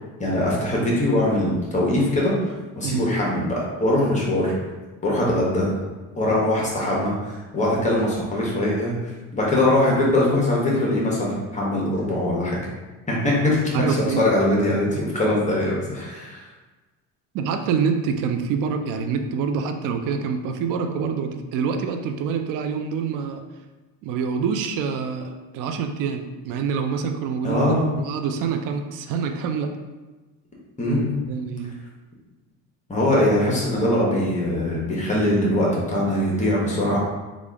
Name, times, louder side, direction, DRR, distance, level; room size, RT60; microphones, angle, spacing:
voice 1, 0.2-2.3 2.8-4.5 5.0-5.7 6.1-12.6 13.1-13.6 14.2-16.4 27.4-27.9 30.8-31.1 32.9-37.0, left 1 dB, 20° left, -4 dB, 1.0 m, -22 dB
voice 2, 13.7-14.3 14.7-15.1 17.3-23.4 24.0-29.7 31.3-31.7, right 6 dB, 55° right, 6 dB, 0.4 m, -26 dB
3.4 x 2.5 x 3.5 m, 1.2 s
cardioid pair, 115°, 39 cm